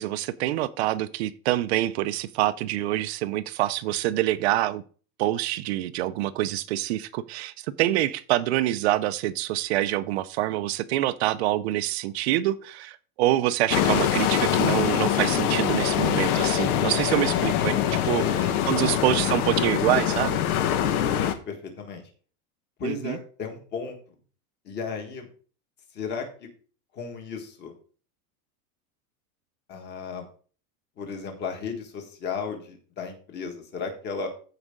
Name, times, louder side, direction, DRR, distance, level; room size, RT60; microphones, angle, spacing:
voice 1, 0.0-4.8 5.2-18.2 18.7-20.4 22.8-23.2, right 14 dB, 45° right, 14 dB, 0.5 m, -26 dB
sound 1, 13.7-21.3, left 10 dB, 75° left, 1.3 m, -24 dB
voice 2, 18.2-19.3 21.0-22.0 22.8-24.0 24.6-25.3 25.9-26.5 26.9-27.7 29.7-30.2 31.0-34.3, left 5 dB, 25° left, 4 dB, 1.6 m, -35 dB
14.5 x 4.9 x 3.7 m, 0.39 s
supercardioid pair, 175°, 45 cm